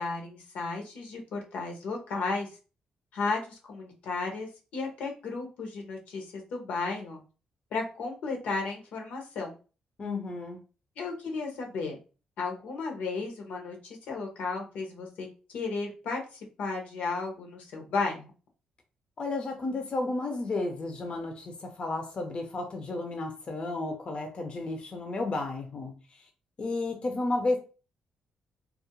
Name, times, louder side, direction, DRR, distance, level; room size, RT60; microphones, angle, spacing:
voice 1, 0.0-2.5 3.1-7.2 7.7-9.5 11.0-12.0 12.4-15.3 15.5-16.2 16.6-18.3, left 4 dB, 80° left, 0.8 m, -34 dB
voice 2, 10.0-10.6 19.2-26.3 26.6-27.6, left 2 dB, 45° left, 0.6 m, -32 dB
2.3 x 2.1 x 2.9 m
cardioid pair, 70°, 2 cm